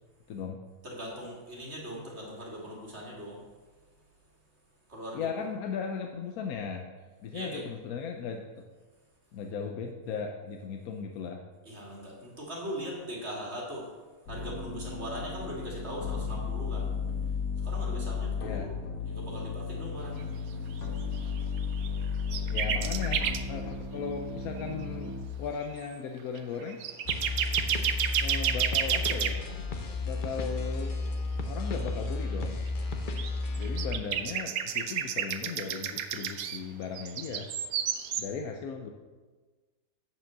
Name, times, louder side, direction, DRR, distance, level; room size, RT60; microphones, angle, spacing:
voice 1, 0.3-0.6 5.1-6.9 7.2-8.7 9.3-11.4 18.4-18.7 22.5-26.8 28.2-29.4 30.0-30.9 31.5-32.6 33.6-37.5 38.2-38.9, left 6 dB, 70° left, 4 dB, 1.1 m, -37 dB
voice 2, 0.8-3.4 4.9-5.4 7.3-7.7 11.7-13.9 14.3-16.9 17.6-18.8 19.0-20.3, equal, 40° right, -3 dB, 2.1 m, -40 dB
sound 1, 14.3-25.3, left 5 dB, 90° left, 1.9 m, -34 dB
sound 2, 21.2-21.9 22.3-23.4 24.6-24.8 25.8-25.9 26.4-29.3 33.2-33.3 33.5-36.6 37.0-38.2, right 8 dB, 70° right, 1.1 m, -30 dB
sound 3, 27.0-34.0, left 3 dB, 45° left, 0.7 m, -33 dB
7.8 x 5.3 x 7.2 m, 1.3 s
omnidirectional pair, 1.7 m